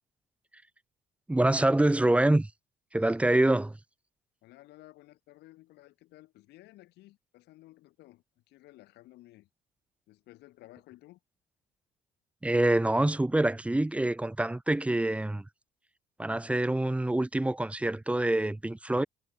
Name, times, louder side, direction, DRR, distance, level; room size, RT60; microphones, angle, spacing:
voice 1, 1.3-2.5 2.9-3.7 12.4-15.4 16.2-19.0, right 1 dB, 5° right, 0.7 m, -26 dB
voice 2, 4.4-9.5 10.1-11.2, left 17 dB, 80° left, 7.2 m, -55 dB
cardioid pair, 110°, 17 cm